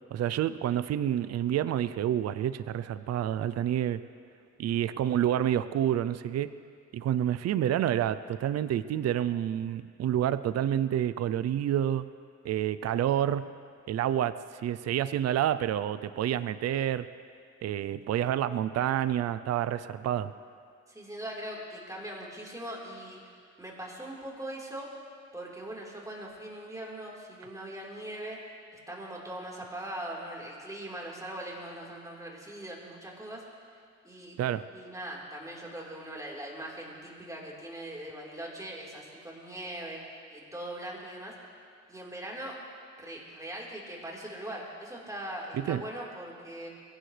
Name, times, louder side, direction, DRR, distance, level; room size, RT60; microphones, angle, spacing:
voice 1, 0.1-4.0 4.6-6.5 6.9-12.1 12.4-13.5 13.9-14.3 14.6-17.1 17.6-20.3 34.4-34.6 45.5-45.8, right 11 dB, 55° right, 14 dB, 0.6 m, -28 dB
voice 2, 20.9-23.2 23.6-24.9 25.3-28.4 28.9-33.4 34.0-34.4 34.7-41.3 41.9-42.6 43.0-46.7, right 1 dB, 10° right, -3 dB, 4.2 m, -41 dB
22.5 x 16.0 x 3.4 m, 2.2 s
cardioid pair, 90°, 30 cm